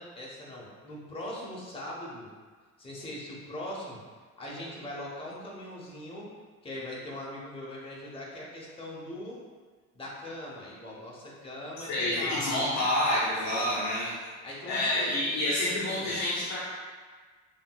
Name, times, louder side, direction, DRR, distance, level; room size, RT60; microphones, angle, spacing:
voice 1, 0.0-2.3 2.8-4.0 4.4-6.3 6.6-9.4 9.9-12.8 14.4-15.1 15.4-16.2, left 1 dB, 15° left, -5 dB, 1.1 m, -40 dB
voice 2, 11.9-14.1 14.7-16.6, left 1 dB, 40° left, -7 dB, 0.9 m, -28 dB
5.6 x 2.4 x 2.3 m, 1.5 s
figure-of-eight pair, 55°, 43 cm